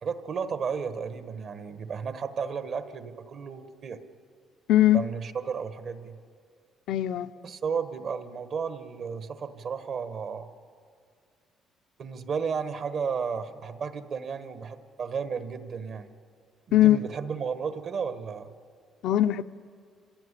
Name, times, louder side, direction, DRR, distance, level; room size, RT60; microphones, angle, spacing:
voice 1, 0.0-4.0 4.8-6.2 7.4-10.5 12.0-16.1 16.7-18.5, right 6 dB, 50° right, 1.2 m, -33 dB
voice 2, 4.7-5.0 6.9-7.3 16.7-17.0 19.0-19.4, left 13 dB, 80° left, 0.6 m, -20 dB
27.5 x 16.5 x 9.9 m
cardioid pair, 145°, 0 cm